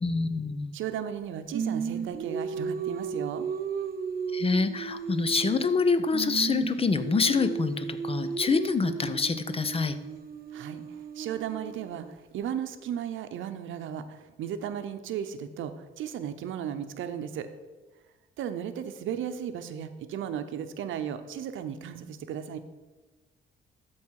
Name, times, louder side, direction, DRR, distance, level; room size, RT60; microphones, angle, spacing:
voice 1, 0.0-0.7 4.3-10.0, left 4 dB, 30° left, 12 dB, 0.6 m, -26 dB
voice 2, 0.7-3.5 10.5-10.8 11.1-17.5 18.4-22.6, right 9 dB, 80° right, 9 dB, 0.7 m, -35 dB
Singing, 1.5-5.8 6.1-12.1, right 6 dB, 50° right, 0.8 m, -35 dB
13.0 x 4.7 x 4.7 m, 1.2 s
cardioid pair, 90°, 20 cm